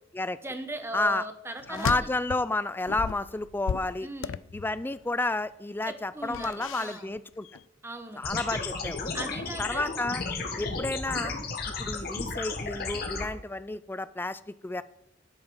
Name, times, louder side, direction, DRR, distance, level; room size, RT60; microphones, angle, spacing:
voice 1, 0.4-2.1 4.0-4.4 5.8-7.1 7.8-8.2 8.5-8.6 9.1-9.9 10.6-10.8, right 2 dB, 15° right, 7 dB, 1.2 m, -39 dB
voice 2, 0.9-1.3 1.7-4.1 4.5-7.5 8.2-9.1 9.6-10.2 10.6-11.3 11.8-14.8, left 2 dB, 10° left, 15 dB, 0.4 m, -31 dB
sound 1, 1.6-2.5 2.9-5.0 6.3-7.2 7.4-7.6, left 7 dB, 90° left, 0.4 m, -35 dB
sound 2, 8.2-13.2, left 4 dB, 55° left, 1.8 m, -33 dB
11.5 x 7.9 x 5.6 m, 0.84 s
head